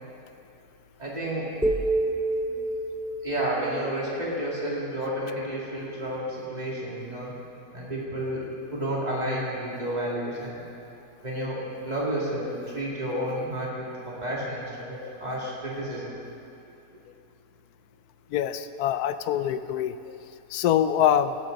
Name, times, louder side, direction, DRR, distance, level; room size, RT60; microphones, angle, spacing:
voice 1, 1.0-1.5 3.2-7.3 7.7-10.6 11.2-16.1, right 1 dB, 25° right, -5 dB, 2.7 m, -31 dB
sound 1, 1.6-5.7, right 2 dB, ahead, 0.6 m, -30 dB
voice 2, 18.3-20.2 20.5-21.4, left 10 dB, 85° left, 12 dB, 1.1 m, -25 dB
16.0 x 12.0 x 4.0 m, 2.7 s
omnidirectional pair, 1.6 m